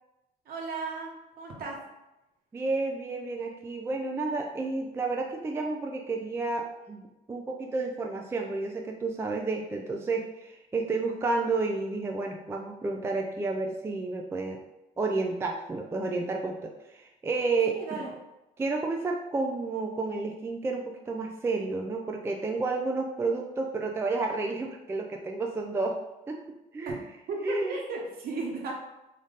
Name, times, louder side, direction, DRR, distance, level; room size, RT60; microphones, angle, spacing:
voice 1, 0.4-1.1 1.4-1.8 17.7-18.1 26.9-27.0 27.3-28.7, right 3 dB, 60° right, -1 dB, 1.1 m, -35 dB
voice 2, 2.5-14.6 15.0-18.0 18.6-26.0 26.3-26.4 26.7-27.0 27.4-27.8, right 3 dB, 15° right, 2 dB, 0.3 m, -31 dB
3.5 x 2.5 x 3.9 m, 0.96 s
cardioid pair, 110°, 17 cm